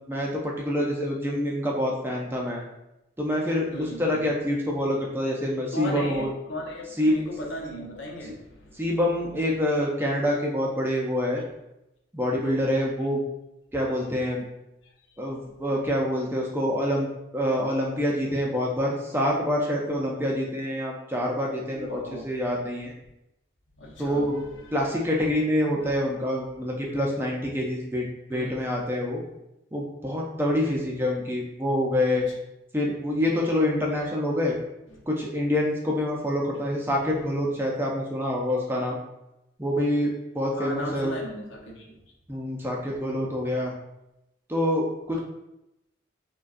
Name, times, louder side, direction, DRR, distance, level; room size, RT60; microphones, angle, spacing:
voice 1, 0.1-2.6 3.2-6.3 7.0-7.1 8.8-11.4 12.1-13.2 13.7-14.4 15.2-17.1 17.3-22.9 24.0-24.4 24.7-29.2 29.7-32.3 32.7-34.5 35.1-39.0 39.6-41.2 42.3-43.7 44.5-45.2, left 1 dB, 10° right, -2 dB, 0.4 m, -26 dB
voice 2, 3.7-4.3 5.7-8.9 21.7-22.2 23.8-24.8 25.8-25.9 28.3-28.5 32.1-32.2 34.9-35.0 40.5-41.9, left 1 dB, 85° left, -2 dB, 0.8 m, -37 dB
4.9 x 2.2 x 2.5 m, 0.89 s
head